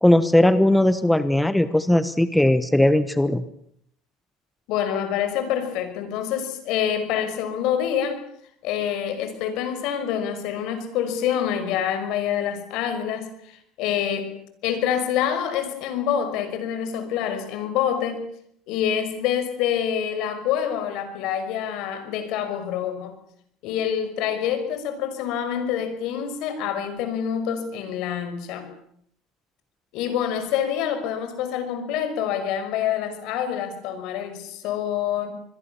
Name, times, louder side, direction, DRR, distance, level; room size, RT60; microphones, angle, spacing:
voice 1, 0.0-3.4, left 1 dB, 5° left, 13 dB, 1.2 m, -18 dB
voice 2, 4.7-8.2 8.6-14.3 14.6-18.3 18.7-23.2 23.6-28.7 29.9-35.3, left 9 dB, 65° left, 9 dB, 5.8 m, -26 dB
26.0 x 22.0 x 7.2 m, 0.70 s
supercardioid pair, 115°, 0 cm